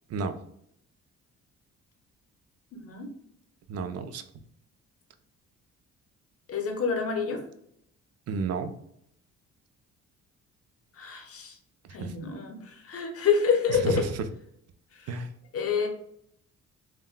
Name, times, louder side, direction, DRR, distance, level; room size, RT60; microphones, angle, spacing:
voice 1, 2.7-3.1 6.5-7.4 11.0-11.5 11.9-14.0 15.5-15.9, left 6 dB, 50° left, 5 dB, 0.7 m, -27 dB
voice 2, 3.7-4.2 8.3-8.7 12.0-12.1 13.7-14.2 15.1-15.3, right 4 dB, 55° right, 9 dB, 0.4 m, -31 dB
3.5 x 2.2 x 2.4 m, 0.72 s
cardioid pair, 90°, 30 cm